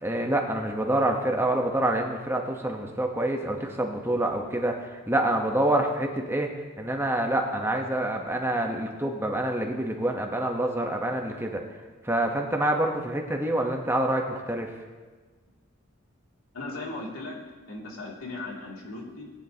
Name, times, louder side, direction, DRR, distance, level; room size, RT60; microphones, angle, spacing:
voice 1, 0.0-6.5 6.8-11.6 12.0-14.7, right 1 dB, 10° right, 2 dB, 1.0 m, -27 dB
voice 2, 16.5-17.4 17.7-19.3, left 2 dB, 85° left, -2 dB, 2.7 m, -37 dB
19.0 x 10.0 x 2.9 m, 1.3 s
head